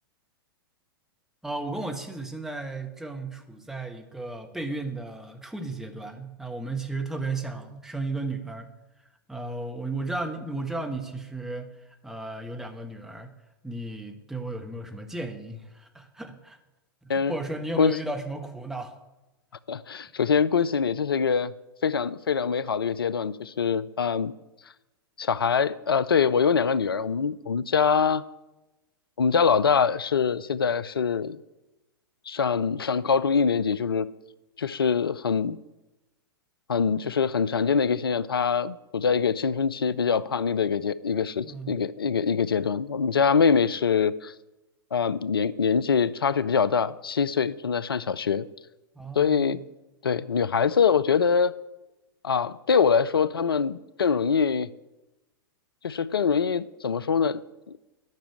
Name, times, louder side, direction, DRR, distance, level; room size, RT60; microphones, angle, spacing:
voice 1, 1.4-8.7 9.3-11.7 12.0-13.3 13.6-16.6 17.0-18.9 41.4-41.8 48.9-49.6, right 2 dB, 5° right, 1.2 m, -34 dB
voice 2, 19.7-21.5 21.8-24.3 25.2-28.2 29.2-31.4 32.3-34.1 34.6-35.6 36.7-44.3 44.9-48.5 49.2-49.6 50.0-51.5 52.2-54.7 55.8-57.4 57.7-57.8, left 6 dB, 80° left, 0.4 m, -24 dB
10.5 x 5.9 x 8.8 m
figure-of-eight pair, 100°, 12 cm